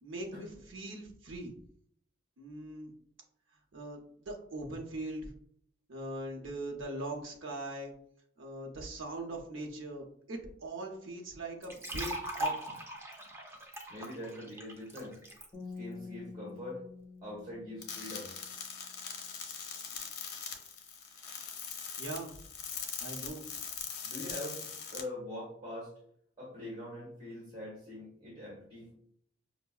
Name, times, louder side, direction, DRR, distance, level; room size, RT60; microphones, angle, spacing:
voice 1, 0.0-1.5 2.4-2.9 3.7-5.3 5.9-7.9 8.4-12.1 12.4-12.6 22.0-22.3 23.0-23.5, right 2 dB, 90° right, 0 dB, 0.7 m, -41 dB
sound 1, 11.6-15.5, right 1 dB, 15° right, 0.4 m, -39 dB
voice 2, 13.9-15.2 15.7-16.8 17.2-18.3 24.0-25.9 26.4-28.9, left 1 dB, 30° right, -6 dB, 1.3 m, -43 dB
sound 2, 15.5-18.7, left 4 dB, 10° left, 1.2 m, -47 dB
sound 3, 17.8-25.0, left 6 dB, 55° left, 0.6 m, -41 dB
5.4 x 2.0 x 2.3 m, 0.65 s
head